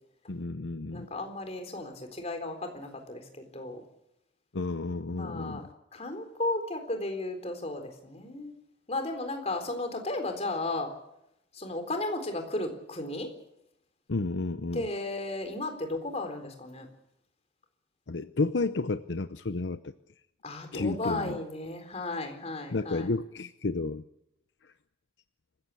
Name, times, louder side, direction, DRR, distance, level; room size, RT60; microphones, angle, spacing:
voice 1, 0.3-1.1 4.5-5.6 14.1-14.8 18.1-19.9 20.7-21.4 22.7-24.0, left 3 dB, 75° left, 11 dB, 0.8 m, -31 dB
voice 2, 0.9-3.8 5.1-5.6 5.9-8.5 8.9-10.9 11.5-13.3 14.7-16.9 20.4-23.1, left 2 dB, 35° left, 6 dB, 4.0 m, -34 dB
26.0 x 15.5 x 8.5 m, 0.82 s
head